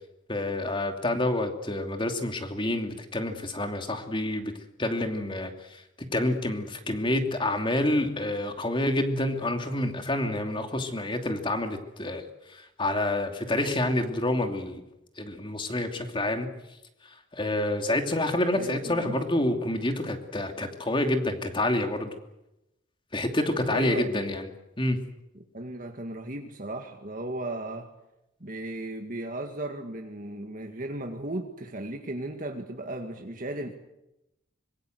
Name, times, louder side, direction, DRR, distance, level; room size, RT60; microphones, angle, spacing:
voice 1, 0.3-4.5 4.8-5.8 6.1-12.2 12.5-14.8 15.2-16.5 17.3-22.1 23.1-24.5 24.8-25.0, left 1 dB, 25° left, 5 dB, 2.8 m, -28 dB
voice 2, 18.5-19.2 23.7-24.2 25.3-27.9 28.4-33.7, right 1 dB, 45° right, 4 dB, 2.0 m, -36 dB
25.0 x 23.0 x 8.0 m, 0.90 s
head